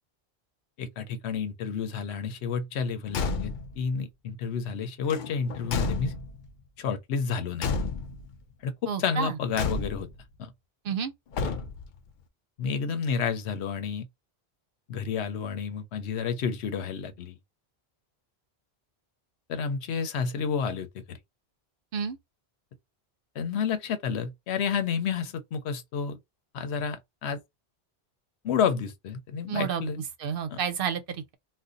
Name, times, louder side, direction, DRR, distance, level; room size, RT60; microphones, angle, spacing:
voice 1, 0.8-6.1 6.8-7.7 8.6-8.7 9.0-10.1 10.4-10.5 12.6-14.1 14.9-17.3 19.5-21.2 23.4-26.2 26.5-27.4 28.4-30.0 30.5-30.6, left 6 dB, 90° left, 0.9 m, -30 dB
Car / Truck / Slam, 3.1-3.8 5.1-6.5 7.6-8.4 9.5-10.2 11.3-12.0, left 4 dB, 60° left, 0.6 m, -31 dB
voice 2, 8.9-9.4 10.8-11.1 21.9-22.2 29.5-29.9 30.2-31.3, right 7 dB, 65° right, 0.7 m, -30 dB
2.6 x 2.2 x 3.7 m
omnidirectional pair, 1.1 m